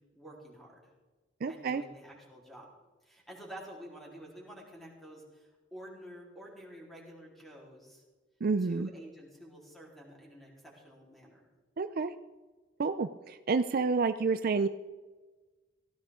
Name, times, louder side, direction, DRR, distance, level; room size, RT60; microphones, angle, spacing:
voice 1, 0.1-0.8 1.5-2.7 3.0-8.0 8.6-11.5, equal, ahead, -4 dB, 3.9 m, -49 dB
voice 2, 1.4-1.8 8.4-8.9 11.8-12.1 12.8-14.7, right 4 dB, 50° right, 11 dB, 0.4 m, -29 dB
17.0 x 15.0 x 3.8 m, 1.3 s
head